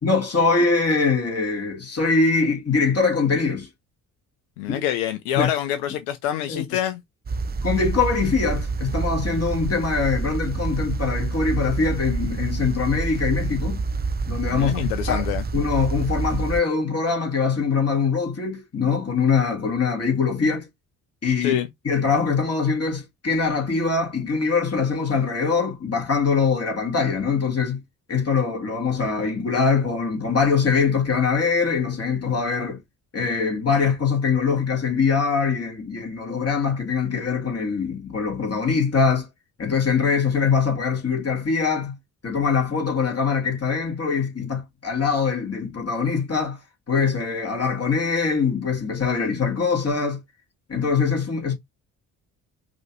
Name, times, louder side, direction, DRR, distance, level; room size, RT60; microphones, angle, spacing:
voice 1, 0.0-3.7 5.3-5.5 6.5-6.6 7.6-13.8 14.3-15.3 15.5-20.7 21.2-21.6 21.8-27.8 28.1-32.8 33.1-39.3 39.6-42.0 42.2-46.6 46.9-50.2 50.7-51.5, left 5 dB, 35° left, 2.5 m, -23 dB
voice 2, 4.6-7.0 14.5-15.4 21.4-21.7, left 11 dB, 85° left, 0.7 m, -26 dB
sound 1, 7.3-16.6, right 4 dB, 25° right, 0.5 m, -27 dB
5.0 x 3.0 x 2.5 m
hypercardioid pair, 50°, 43 cm